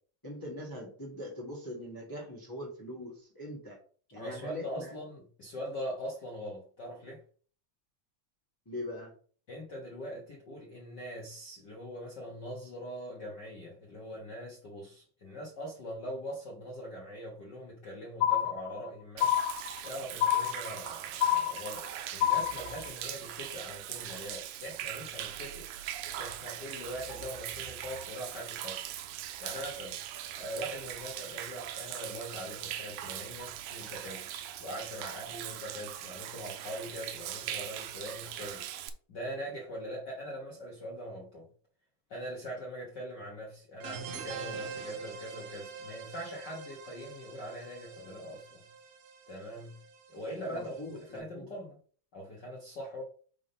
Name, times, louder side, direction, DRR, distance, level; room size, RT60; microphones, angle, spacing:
voice 1, 0.2-3.8 4.1-4.9 8.6-9.1 50.5-51.5, left 1 dB, 10° left, 1.0 m, -42 dB
voice 2, 4.1-7.2 9.5-19.3 19.8-21.9 22.1-25.7 26.2-28.9 29.4-30.0 30.3-34.3 34.6-38.6 39.1-41.5 42.1-48.6 49.3-49.8 50.1-51.8 52.1-53.0, equal, 45° left, 1.5 m, -42 dB
sound 1, 18.2-18.9 19.2-19.9 20.2-20.9 21.2-21.9 22.2-22.9, left 11 dB, 90° left, 1.3 m, -28 dB
Human voice / Rain / Stream, 19.2-38.9, right 11 dB, 90° right, 2.1 m, -41 dB
sound 2, 43.8-51.1, right 5 dB, 70° right, 2.2 m, -45 dB
5.4 x 3.7 x 5.4 m
omnidirectional pair, 3.4 m